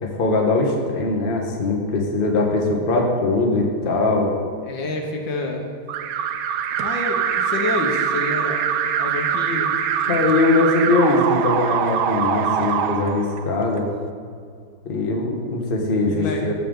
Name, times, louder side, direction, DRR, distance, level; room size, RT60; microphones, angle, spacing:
voice 1, 0.0-4.3 10.1-13.9 14.8-16.5, left 2 dB, 35° left, 0 dB, 1.1 m, -21 dB
voice 2, 4.7-5.7 6.8-8.6 9.0-9.7 16.1-16.5, left 2 dB, 70° left, 2 dB, 1.8 m, -28 dB
Alarm, 5.9-13.8, right 8 dB, 85° right, 1.4 m, -23 dB
14.5 x 6.7 x 3.8 m, 2.3 s
omnidirectional pair, 2.1 m